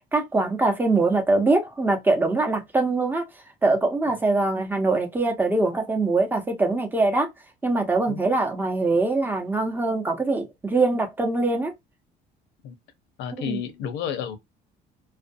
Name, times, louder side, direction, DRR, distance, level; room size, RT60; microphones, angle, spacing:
voice 1, 0.1-3.3 3.6-7.3 7.6-11.7 13.4-13.6, right 3 dB, 10° right, 0.7 m, -23 dB
voice 2, 13.2-14.4, left 8 dB, 80° left, 0.7 m, -31 dB
2.5 x 2.2 x 2.6 m
cardioid pair, 125°, 18 cm